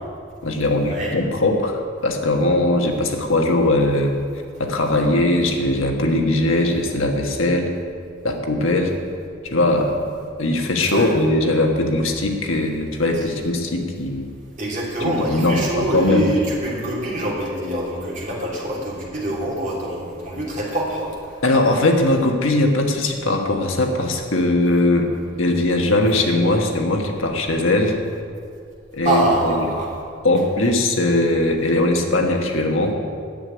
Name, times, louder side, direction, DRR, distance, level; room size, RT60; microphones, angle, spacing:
voice 1, 0.4-4.1 4.6-7.7 8.2-8.9 9.4-10.0 10.4-14.2 15.0-16.3 21.4-25.1 25.4-28.0 28.9-29.7 30.2-32.9, left 2 dB, 75° left, 3 dB, 1.4 m, -20 dB
voice 2, 14.6-21.1 29.0-29.9, right 1 dB, 35° right, -5 dB, 3.1 m, -24 dB
10.0 x 7.8 x 9.6 m, 2.3 s
head